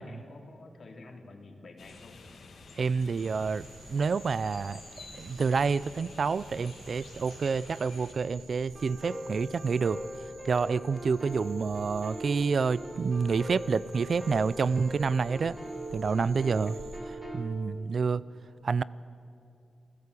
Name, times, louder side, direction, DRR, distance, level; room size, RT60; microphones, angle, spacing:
voice 1, 0.0-2.2 15.4-15.6, left 2 dB, 60° left, 3 dB, 3.3 m, -49 dB
sound 1, 1.8-8.1, left 4 dB, 80° left, 2.7 m, -50 dB
voice 2, 2.8-10.0 10.4-15.6 15.9-16.7 17.3-18.2 18.6-18.8, right 5 dB, 60° right, 19 dB, 0.5 m, -28 dB
sound 2, 3.2-17.0, right 3 dB, 90° right, 3.7 m, -51 dB
sound 3, 8.7-17.5, right 1 dB, 10° right, 3.5 m, -41 dB
27.5 x 15.5 x 8.4 m, 2.6 s
wide cardioid pair, 95°, 0 cm